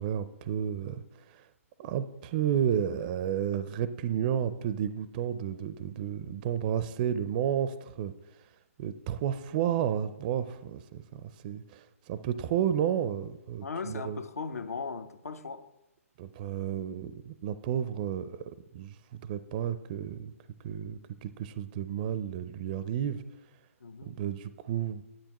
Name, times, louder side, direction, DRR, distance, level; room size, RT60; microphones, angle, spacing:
voice 1, 0.0-1.5 1.8-8.4 8.8-14.2 16.2-20.3 20.6-23.2 24.0-25.0, right 9 dB, 35° right, 0.4 m, -32 dB
voice 2, 13.6-15.7 23.8-24.2, left 4 dB, 80° left, 0.8 m, -38 dB
10.0 x 8.5 x 3.0 m
figure-of-eight pair, 135°, 8 cm